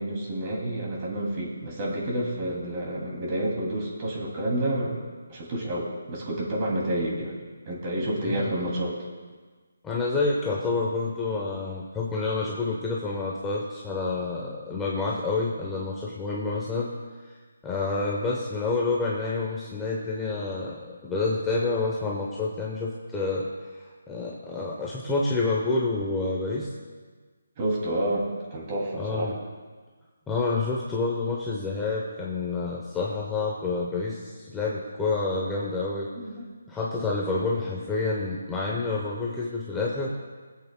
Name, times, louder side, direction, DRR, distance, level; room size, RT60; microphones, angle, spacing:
voice 1, 0.0-5.0 5.3-7.3 7.7-9.0 14.2-14.5 25.0-25.1 27.6-29.3 36.1-36.5, right 1 dB, 25° right, -3 dB, 2.5 m, -29 dB
voice 2, 8.2-8.5 9.8-16.9 17.6-23.5 23.7-26.7 29.0-29.3 30.3-36.1 36.7-40.1, left 3 dB, 10° left, -5 dB, 0.8 m, -28 dB
24.0 x 8.1 x 2.2 m, 1.4 s
hypercardioid pair, 165°, 0 cm